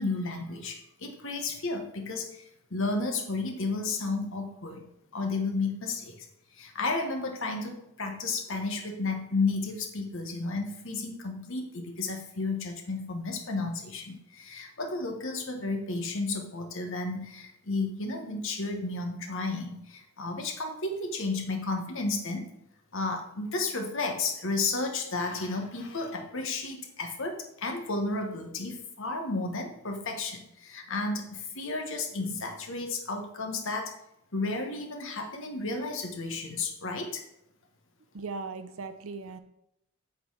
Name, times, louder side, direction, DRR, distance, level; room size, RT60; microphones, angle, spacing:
voice 1, 0.0-2.4 2.7-4.8 5.1-6.3 6.5-22.5 22.9-33.9 34.3-37.2, left 3 dB, 65° left, 4 dB, 1.3 m, -32 dB
voice 2, 38.1-39.4, right 4 dB, 70° right, 10 dB, 0.6 m, -38 dB
8.0 x 4.1 x 4.8 m, 0.80 s
head